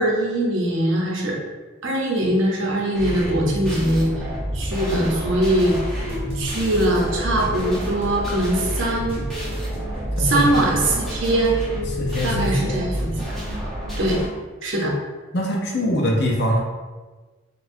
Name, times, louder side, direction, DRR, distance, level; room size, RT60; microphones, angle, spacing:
voice 1, 0.0-1.4 1.8-4.1 4.5-5.8 6.3-9.2 10.2-11.6 12.2-13.1 14.0-14.2 14.6-14.9, right 1 dB, 65° right, -2 dB, 0.7 m, -21 dB
sound 1, 2.9-14.3, right 1 dB, ahead, 0.9 m, -29 dB
sound 2, 5.9-13.3, left 1 dB, 30° right, 0.7 m, -36 dB
voice 2, 10.2-10.6 11.9-12.8 15.3-16.6, left 1 dB, 55° left, -1 dB, 0.6 m, -23 dB
4.2 x 2.3 x 2.6 m, 1.3 s
head